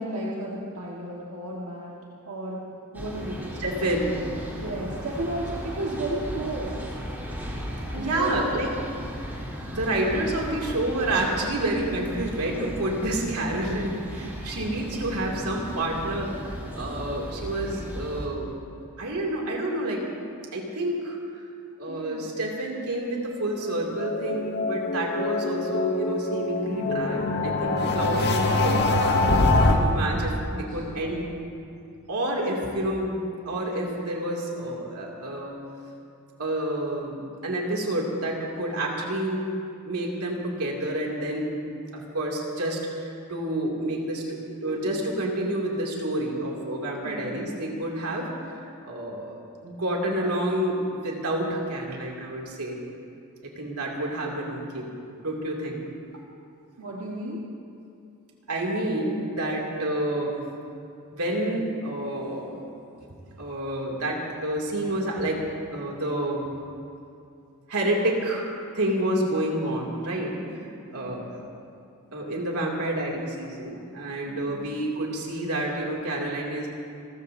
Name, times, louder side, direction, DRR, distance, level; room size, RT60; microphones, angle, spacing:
voice 1, 0.0-2.0 2.3-3.5 4.5-6.8 7.9-8.5 21.9-22.2 30.1-31.2 47.0-47.5 56.8-57.4 70.2-70.6 70.9-71.2 74.3-74.7, right 1 dB, 70° right, -5 dB, 1.7 m, -34 dB
sound 1, 2.9-18.3, equal, 10° right, 3.3 m, -36 dB
voice 2, 3.6-4.2 8.0-8.7 9.6-18.5 19.0-20.1 20.5-21.2 21.8-29.0 29.7-31.3 32.1-35.6 36.4-39.5 39.8-41.6 41.9-52.8 53.4-54.9 55.2-55.8 58.5-60.4 61.1-62.6 63.4-66.6 67.7-68.5 68.7-70.4 70.9-71.4 72.1-76.7, right 1 dB, 85° right, -2 dB, 2.8 m, -29 dB
sound 2, 23.6-29.8, left 2 dB, 50° left, 1.3 m, -24 dB
29.5 x 14.0 x 2.8 m, 2.6 s
head